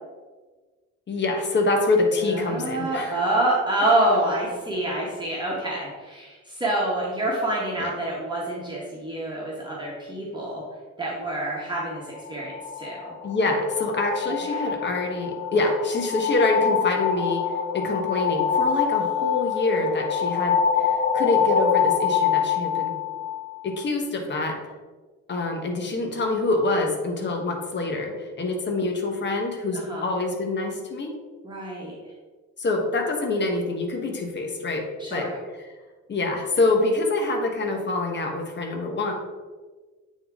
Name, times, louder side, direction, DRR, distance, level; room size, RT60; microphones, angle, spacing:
voice 1, 1.1-3.1 7.8-7.9 13.2-17.5 17.7-22.9 23.6-24.6 25.3-31.1 32.6-34.9 35.1-35.3 36.1-39.1, left 2 dB, 35° left, 2 dB, 1.2 m, -25 dB
voice 2, 2.2-10.6 11.0-13.1 14.3-14.7 29.7-30.1 31.4-31.9 35.0-35.4, right 1 dB, 15° right, -5 dB, 1.5 m, -27 dB
sound 1, 12.1-23.8, left 7 dB, 70° left, 0.5 m, -25 dB
8.4 x 3.7 x 3.7 m, 1.3 s
cardioid pair, 90°, 30 cm